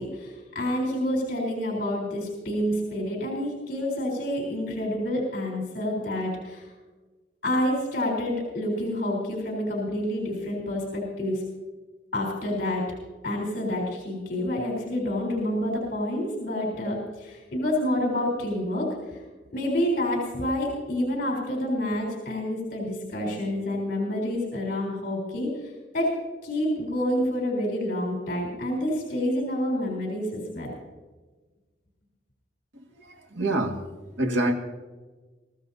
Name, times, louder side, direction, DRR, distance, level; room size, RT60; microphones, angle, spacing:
voice 1, 0.0-6.7 7.4-11.4 12.1-12.9 13.2-19.2 19.5-25.5 25.9-26.1 26.4-30.7, left 1 dB, 50° left, -3 dB, 4.0 m, -28 dB
voice 2, 32.7-33.8 34.1-34.5, right 1 dB, 90° right, 1 dB, 2.0 m, -27 dB
22.5 x 15.0 x 2.8 m, 1.3 s
head